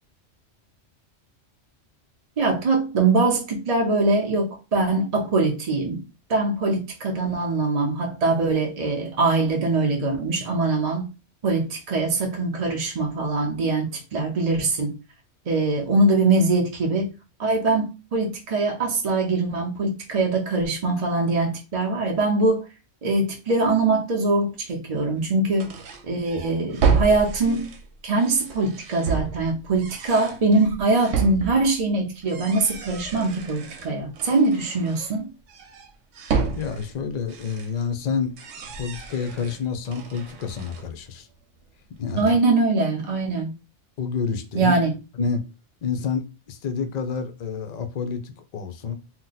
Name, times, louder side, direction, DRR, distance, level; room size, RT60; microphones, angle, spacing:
voice 1, 2.4-6.0 6.3-11.1 11.4-15.0 15.5-17.1 17.4-22.6 23.0-25.7 26.0-27.7 28.0-35.3 42.2-43.5 44.5-44.9, right 3 dB, 45° right, 0.6 m, -22 dB
sound 1, 25.2-25.3 25.6-31.9 32.2-35.2 35.5-38.0 38.3-41.1 41.3-41.4 42.1-42.4, right 5 dB, 80° right, 1.0 m, -30 dB
voice 2, 36.5-38.4 38.8-41.3 42.0-42.4 44.0-44.8 45.2-45.4 45.8-49.0, left 6 dB, 55° left, 0.5 m, -28 dB
2.7 x 2.1 x 3.9 m
omnidirectional pair, 1.3 m